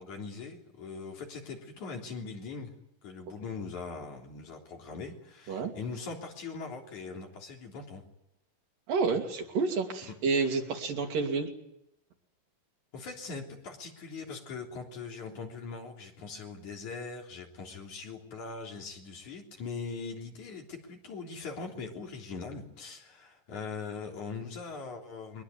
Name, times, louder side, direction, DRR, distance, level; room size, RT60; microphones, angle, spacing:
voice 1, 0.0-2.7 3.0-8.0 10.0-10.1 12.9-25.4, left 4 dB, 60° left, 1 dB, 4.8 m, -41 dB
voice 2, 8.9-11.5, right 4 dB, 85° right, 3 dB, 4.5 m, -29 dB
23.0 x 20.5 x 9.5 m, 0.81 s
omnidirectional pair, 3.8 m